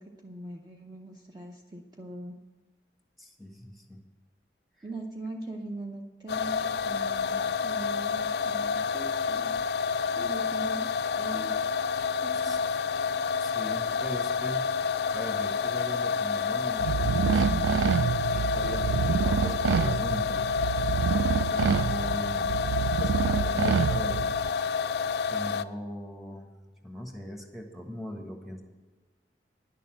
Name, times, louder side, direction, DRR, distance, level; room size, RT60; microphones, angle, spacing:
voice 1, 0.0-2.4 4.8-7.4 7.6-9.6 10.1-11.6 12.2-12.6, right 2 dB, 25° right, 0 dB, 0.7 m, -41 dB
voice 2, 3.2-4.0 12.4-12.6 13.4-14.6 15.1-17.8 18.3-20.5 21.5-22.6 23.0-24.3 25.3-26.5 26.8-28.6, equal, ahead, 3 dB, 1.3 m, -39 dB
sound 1, 6.3-25.6, left 5 dB, 65° left, 0.4 m, -29 dB
sound 2, 16.8-24.5, right 6 dB, 85° right, 0.3 m, -27 dB
10.5 x 6.8 x 7.6 m, 1.3 s
head